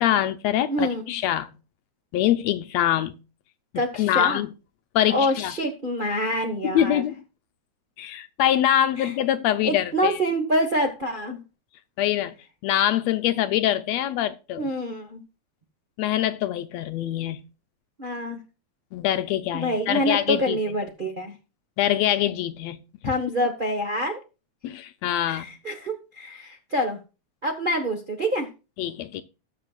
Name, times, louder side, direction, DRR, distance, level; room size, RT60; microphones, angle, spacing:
voice 1, 0.0-1.5 2.1-3.2 4.0-4.5 4.9-5.5 6.6-7.2 8.0-10.2 12.0-12.3 12.6-14.7 16.0-17.4 18.9-20.6 21.8-22.8 23.0-23.1 24.6-25.5 28.8-29.2, left 12 dB, 75° left, 1.7 m, -24 dB
voice 2, 0.7-1.2 3.7-4.4 5.1-7.0 9.0-9.1 9.6-11.4 14.6-15.2 18.0-18.4 19.5-21.4 23.0-24.2 25.3-27.0 27.4-28.5, equal, 60° right, 0.5 m, -26 dB
19.5 x 6.8 x 2.4 m
omnidirectional pair, 3.4 m